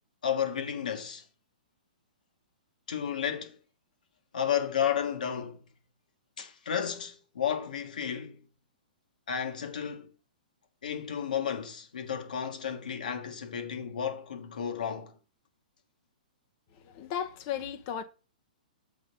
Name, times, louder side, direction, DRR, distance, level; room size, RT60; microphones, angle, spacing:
voice 1, 0.2-1.2 2.9-3.5 4.3-5.6 6.4-8.4 9.3-10.1 10.8-15.1, left 8 dB, 70° left, 1.3 m, -32 dB
voice 2, 16.8-18.0, left 9 dB, 40° left, 0.8 m, -35 dB
7.5 x 3.6 x 5.4 m
figure-of-eight pair, 115°, 5 cm